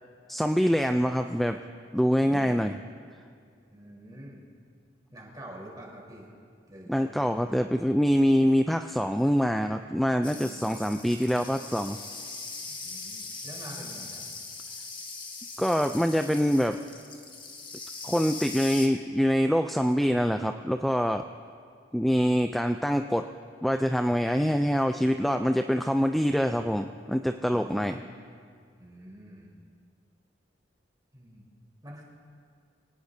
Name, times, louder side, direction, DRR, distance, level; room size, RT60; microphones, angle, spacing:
voice 1, 0.3-1.6 1.9-2.7 6.9-12.0 15.6-16.8 18.0-21.2 21.9-23.2 23.6-27.9, equal, ahead, 6 dB, 0.3 m, -25 dB
voice 2, 2.0-2.6 3.7-4.4 5.1-6.3 6.7-7.6 10.4-10.9 12.7-14.2 27.5-28.1 28.8-29.5 31.1-31.5 31.8-32.0, right 1 dB, 20° right, -3 dB, 3.9 m, -46 dB
sound 1, 10.2-18.9, left 3 dB, 25° left, 1.5 m, -41 dB
25.5 x 18.5 x 2.7 m, 2.2 s
head